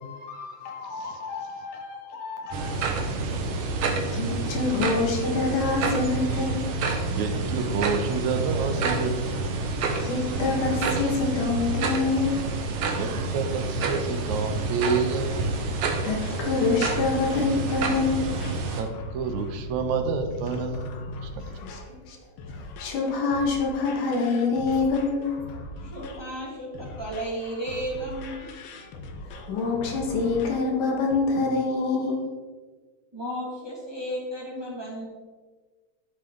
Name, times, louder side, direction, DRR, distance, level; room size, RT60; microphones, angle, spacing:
voice 1, 0.0-2.7 4.1-6.6 10.0-12.5 16.0-18.4 21.6-21.8 22.1-22.2 22.5-25.4 29.2-32.2, left 3 dB, 85° left, 1 dB, 3.2 m, -26 dB
sound 1, 2.5-18.8, right 3 dB, 60° right, 1.9 m, -28 dB
voice 2, 3.6-4.2 7.1-9.5 12.9-15.5 18.8-21.1, right 5 dB, 80° right, 7 dB, 2.2 m, -29 dB
sound 2, 16.2-30.7 31.1-31.2, left 2 dB, 65° left, 1.6 m, -41 dB
voice 3, 25.8-28.5 33.1-35.1, equal, 10° right, -3 dB, 1.5 m, -33 dB
12.0 x 7.1 x 3.8 m, 1.4 s
omnidirectional pair, 3.4 m